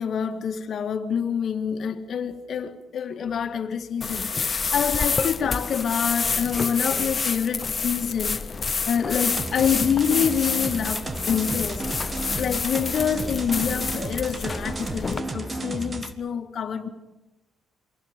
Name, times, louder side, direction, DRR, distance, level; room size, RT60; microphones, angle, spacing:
voice 1, 0.0-11.9 12.3-16.9, left 7 dB, 60° left, 1.9 m, -27 dB
sound 1, 4.0-15.2, left 5 dB, 35° left, 0.7 m, -28 dB
sound 2, 9.4-16.1, right 2 dB, 30° right, 1.6 m, -33 dB
28.0 x 23.5 x 5.2 m
cardioid pair, 90°, 0 cm